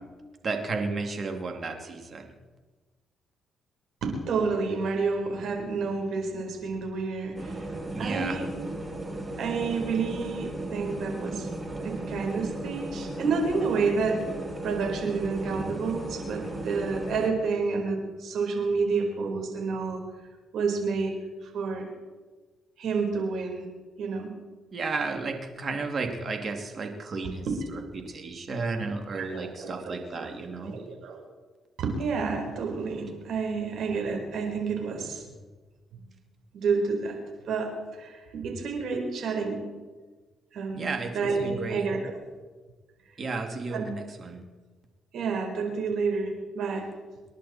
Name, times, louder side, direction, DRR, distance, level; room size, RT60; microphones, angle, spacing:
voice 1, 0.4-2.3 7.9-8.4 24.7-27.5 27.7-27.8 28.1-30.8 40.7-41.9 43.2-44.4, right 3 dB, 45° right, 4 dB, 2.8 m, -33 dB
voice 2, 4.0-8.5 9.4-11.5 11.8-14.2 14.6-20.0 20.5-21.1 21.4-21.9 22.8-23.7 24.0-24.3 27.2-27.6 29.2-30.3 30.6-31.2 31.8-35.3 36.5-37.2 37.5-39.6 40.5-42.1 43.7-43.9 45.1-46.8, right 4 dB, 70° right, 2 dB, 4.6 m, -29 dB
sound 1, 7.4-17.3, right 1 dB, 20° right, 2.8 m, -35 dB
27.5 x 11.0 x 4.4 m, 1.3 s
cardioid pair, 90°, 0 cm